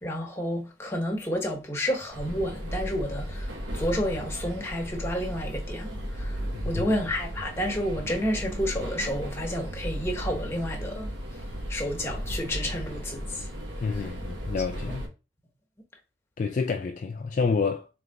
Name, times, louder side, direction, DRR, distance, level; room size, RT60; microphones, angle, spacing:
voice 1, 0.0-11.1 11.7-13.5 13.8-14.1, equal, 15° left, 1.1 m, -30 dB
sound 1, 2.1-15.1, equal, 75° right, 1.3 m, -35 dB
voice 2, 6.5-6.9 13.8-15.1 16.4-17.9, left 5 dB, 45° left, 0.3 m, -28 dB
3.9 x 3.5 x 3.5 m
head